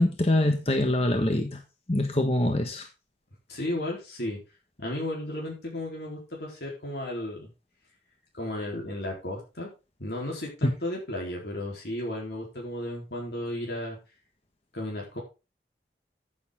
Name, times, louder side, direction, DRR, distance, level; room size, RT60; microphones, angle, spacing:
voice 1, 0.0-1.6 1.9-2.8 10.6-10.7, left 1 dB, 35° left, 1.4 m, -24 dB
voice 2, 3.5-4.4 4.8-7.5 8.3-9.7 10.0-14.0 14.7-15.2, left 1 dB, 65° left, 3.8 m, -34 dB
14.5 x 7.3 x 3.8 m
head